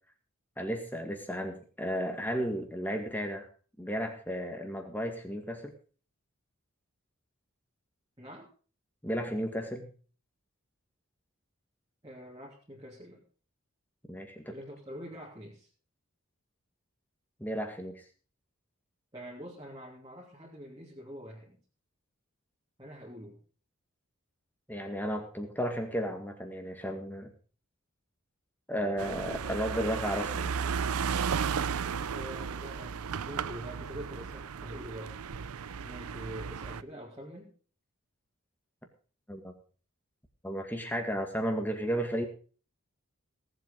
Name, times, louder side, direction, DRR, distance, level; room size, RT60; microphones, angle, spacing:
voice 1, 0.6-3.5 3.8-5.7 9.0-9.9 14.1-14.5 17.4-18.0 24.7-27.3 28.7-30.5 39.3-39.5 40.4-42.3, equal, 10° left, 5 dB, 1.9 m, -33 dB
voice 2, 8.2-8.5 12.0-13.2 14.5-15.7 19.1-21.6 22.8-23.4 32.1-35.1 35.8-37.5, equal, 20° right, -5 dB, 3.0 m, -45 dB
sound 1, 29.0-36.8, right 6 dB, 85° right, 0.5 m, -34 dB
18.0 x 8.0 x 5.2 m, 0.40 s
head